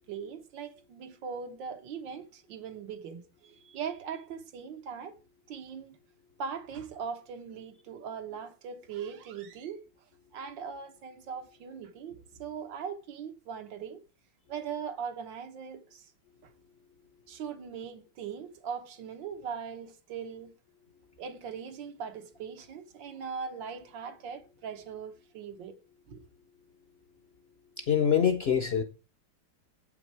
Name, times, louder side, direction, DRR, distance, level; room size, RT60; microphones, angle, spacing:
voice 1, 0.0-5.2 5.5-6.0 6.4-9.8 10.3-14.0 14.5-16.1 16.4-16.5 17.3-20.5 21.2-25.8 26.1-26.2, right 6 dB, 85° right, 1.8 m, -40 dB
voice 2, 27.8-28.8, left 8 dB, 55° left, 0.7 m, -25 dB
8.3 x 5.9 x 4.6 m
omnidirectional pair, 2.0 m